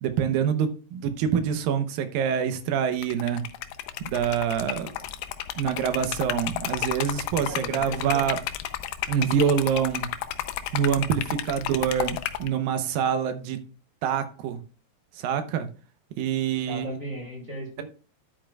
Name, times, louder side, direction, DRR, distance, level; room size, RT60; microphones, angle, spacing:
voice 1, 0.0-3.4 4.0-4.9 5.6-8.4 9.1-10.1 10.7-13.6 14.0-14.6 15.1-15.7 16.2-17.0, right 8 dB, 80° right, 2.6 m, -26 dB
Liquid, 2.9-12.5, left 12 dB, 80° left, 2.4 m, -32 dB
voice 2, 4.7-5.0 7.5-8.3 11.6-11.8 16.7-17.8, right 1 dB, 25° right, 2.9 m, -37 dB
10.5 x 8.8 x 2.3 m
omnidirectional pair, 4.0 m